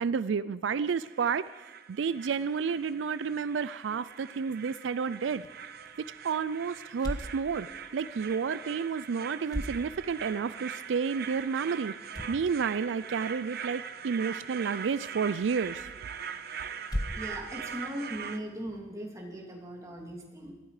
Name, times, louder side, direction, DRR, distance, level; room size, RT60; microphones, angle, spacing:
voice 1, 0.0-1.4 1.9-5.5 6.2-7.7 7.9-11.9 12.3-15.9, right 6 dB, 75° right, 15 dB, 0.4 m, -30 dB
sound 1, 0.9-18.4, right 7 dB, 60° right, 1.0 m, -42 dB
sound 2, 5.2-18.8, equal, 20° left, 1.5 m, -43 dB
voice 2, 17.2-20.5, equal, 20° right, 0 dB, 2.7 m, -39 dB
19.0 x 13.5 x 4.9 m, 1.2 s
head